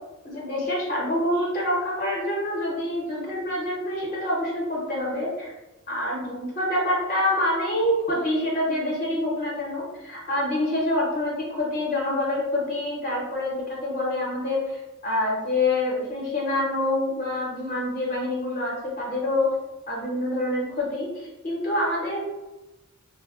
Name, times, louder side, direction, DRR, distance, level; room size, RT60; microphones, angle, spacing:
voice 1, 0.2-5.5 5.9-14.6 15.0-19.5 19.9-22.2, left 1 dB, 40° left, -4 dB, 0.8 m, -26 dB
3.8 x 2.1 x 2.4 m, 1.0 s
head